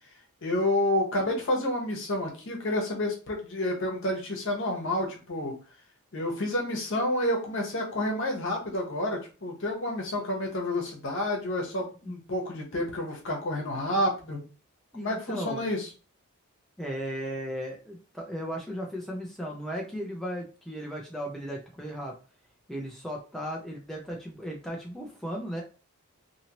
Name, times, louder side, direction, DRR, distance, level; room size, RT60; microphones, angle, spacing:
voice 1, 0.4-5.5 6.1-14.4 15.0-15.9, left 1 dB, 60° left, -1 dB, 1.0 m, -29 dB
voice 2, 14.9-15.6 16.8-22.1 22.7-25.6, equal, ahead, -2 dB, 0.5 m, -36 dB
2.8 x 2.7 x 2.9 m, 0.34 s
head